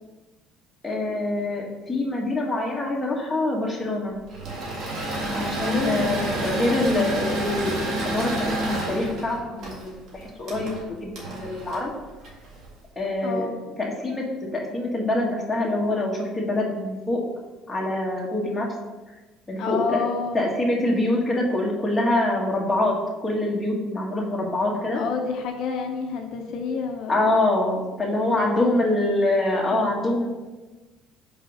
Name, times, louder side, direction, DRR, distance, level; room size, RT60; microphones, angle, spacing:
voice 1, 0.8-4.2 5.3-11.9 13.0-13.5 13.8-14.2 14.5-17.2 17.7-18.7 19.5-20.0 20.3-22.9 23.2-25.0 27.1-30.3, left 1 dB, 10° left, -4 dB, 1.7 m, -25 dB
Engine / Mechanisms, 4.3-12.7, right 1 dB, 60° right, 1.9 m, -29 dB
voice 2, 5.6-6.2 13.2-13.6 19.6-20.4 24.9-27.4 28.2-28.9 29.7-30.1, left 5 dB, 65° left, 3 dB, 0.6 m, -29 dB
5.4 x 4.9 x 5.4 m, 1.2 s
cardioid pair, 120°, 0 cm